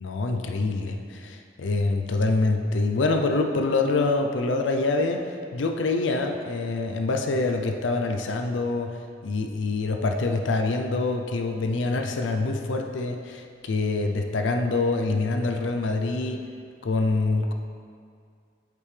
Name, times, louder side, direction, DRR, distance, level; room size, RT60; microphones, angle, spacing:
voice 1, 0.0-5.2 5.5-9.0 9.2-16.4 16.8-17.5, left 3 dB, 80° left, 4 dB, 0.5 m, -25 dB
8.2 x 5.2 x 3.3 m, 2.2 s
head